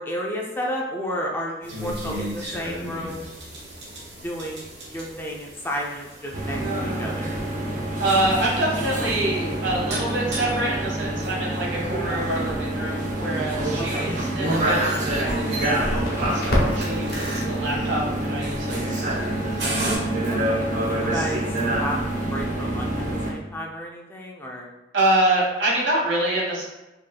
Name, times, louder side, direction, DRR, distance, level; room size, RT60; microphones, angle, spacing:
voice 1, 0.0-3.3 4.2-7.4 13.8-14.1 20.3-21.4 21.8-24.7, equal, 10° left, -1 dB, 0.4 m, -32 dB
sound 1, 1.6-20.0, right 1 dB, 65° right, 1.4 m, -37 dB
sound 2, 6.3-23.3, right 1 dB, 45° right, 0.7 m, -26 dB
voice 2, 8.0-19.4 24.9-26.6, right 1 dB, 85° right, -3 dB, 1.3 m, -26 dB
Crackle, 15.7-22.4, left 1 dB, 55° left, 1.0 m, -32 dB
5.1 x 3.0 x 2.2 m, 1.0 s
head